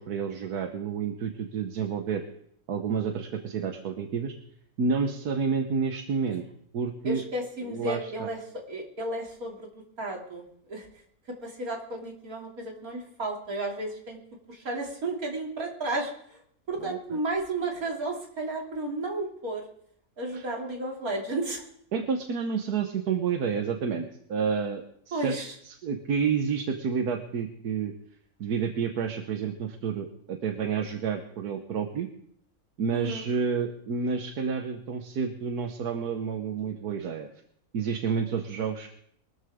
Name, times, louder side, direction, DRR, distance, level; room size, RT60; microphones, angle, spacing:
voice 1, 0.0-2.2 2.7-4.3 4.8-6.4 6.7-7.2 7.6-8.3 16.8-17.0 20.3-20.4 21.9-25.4 25.7-27.9 28.4-32.1 32.8-37.3 37.7-38.9, right 6 dB, 85° right, 5 dB, 1.6 m, -29 dB
voice 2, 7.0-8.4 8.7-9.7 10.0-10.9 11.4-14.2 14.5-16.4 16.7-19.6 20.2-21.6 25.1-25.5 32.9-33.2, right 2 dB, 70° right, 0 dB, 3.3 m, -33 dB
22.5 x 13.5 x 3.6 m, 0.67 s
omnidirectional pair, 1.6 m